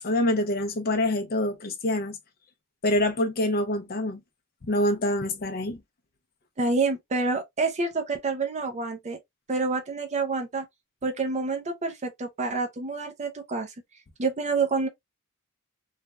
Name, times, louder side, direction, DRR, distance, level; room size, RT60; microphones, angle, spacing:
voice 1, 0.0-2.2 2.8-4.2 4.7-5.8, left 1 dB, 45° left, 0.6 m, -25 dB
voice 2, 6.6-9.2 9.5-10.7 11.0-13.7 14.2-14.9, right 3 dB, 30° right, 0.5 m, -28 dB
3.2 x 2.3 x 2.3 m
head